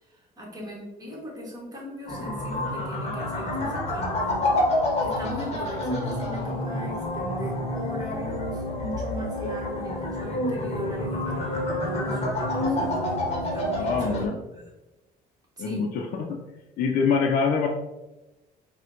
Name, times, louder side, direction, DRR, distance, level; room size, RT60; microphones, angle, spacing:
voice 1, 0.0-4.5 5.0-14.7 15.6-15.9, equal, 25° right, -4 dB, 1.2 m, -38 dB
sound 1, 2.1-14.3, left 1 dB, 40° left, 0.8 m, -28 dB
voice 2, 13.8-14.4 15.6-16.4 16.8-17.7, left 5 dB, 55° left, 1 dB, 0.4 m, -25 dB
4.2 x 2.1 x 2.4 m, 1.0 s
cardioid pair, 110°, 17 cm